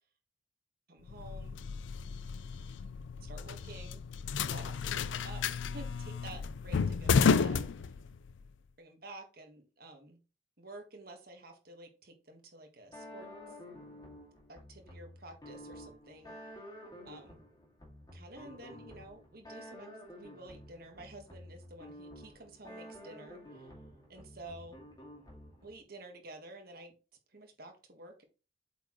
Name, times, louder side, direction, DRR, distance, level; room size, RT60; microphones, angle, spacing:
voice 1, 0.9-1.7 3.2-4.0 4.4-7.9 8.8-10.2 10.6-13.5 14.5-16.6 17.1-17.4 18.1-23.7 24.1-24.8 25.6-27.0 27.3-28.2, right 2 dB, 50° right, 4 dB, 1.5 m, -51 dB
sound 1, 1.1-8.4, left 5 dB, 75° left, 0.4 m, -32 dB
sound 2, 12.9-25.8, equal, 20° left, 2.2 m, -51 dB
8.0 x 4.6 x 3.1 m, 0.33 s
head